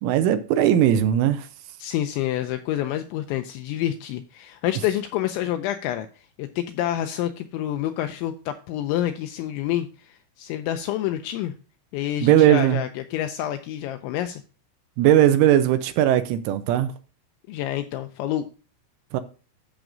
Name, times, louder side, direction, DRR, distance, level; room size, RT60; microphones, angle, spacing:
voice 1, 0.0-1.5 12.2-12.8 15.0-16.9 19.1-19.2, right 11 dB, 80° right, 3.1 m, -18 dB
voice 2, 1.8-11.5 11.9-14.4 17.5-18.5, left 12 dB, 85° left, 2.6 m, -28 dB
13.5 x 6.1 x 2.6 m
omnidirectional pair, 5.8 m